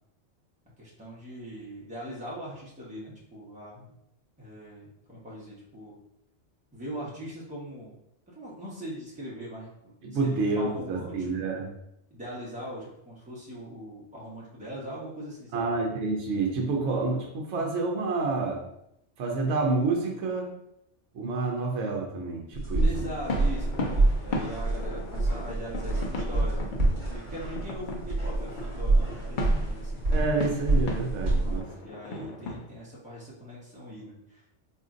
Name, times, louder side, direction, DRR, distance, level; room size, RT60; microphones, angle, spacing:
voice 1, 0.8-3.9 4.4-6.0 6.7-7.9 8.3-11.7 12.1-15.7 22.8-26.7 27.1-30.0 31.4-34.4, equal, 5° right, -6 dB, 0.9 m, -41 dB
voice 2, 10.0-11.7 15.5-18.6 19.2-20.5 21.1-23.1 30.1-31.7 32.2-32.3, right 3 dB, 70° right, -1 dB, 0.9 m, -28 dB
sound 1, 22.5-31.6, right 2 dB, 55° right, 1.2 m, -27 dB
sound 2, 23.3-32.7, left 2 dB, 55° left, 0.6 m, -37 dB
4.3 x 2.6 x 2.5 m, 0.79 s
omnidirectional pair, 1.3 m